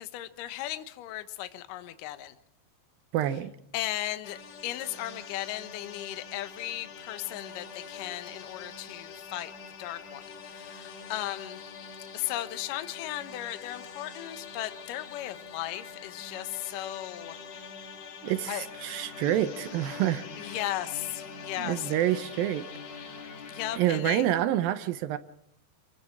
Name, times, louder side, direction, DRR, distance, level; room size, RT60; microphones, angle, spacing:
voice 1, 0.0-2.3 3.7-9.5 9.8-11.6 12.1-17.4 18.5-18.7 20.4-21.9 23.5-24.3, left 14 dB, 65° left, 10 dB, 2.2 m, -36 dB
voice 2, 3.1-3.5 18.2-20.6 21.6-22.7 23.7-25.2, right 12 dB, 75° right, 11 dB, 2.2 m, -28 dB
sound 1, 4.2-24.0, left 5 dB, 50° left, 2.3 m, -44 dB
27.5 x 15.5 x 6.0 m, 0.76 s
omnidirectional pair, 5.1 m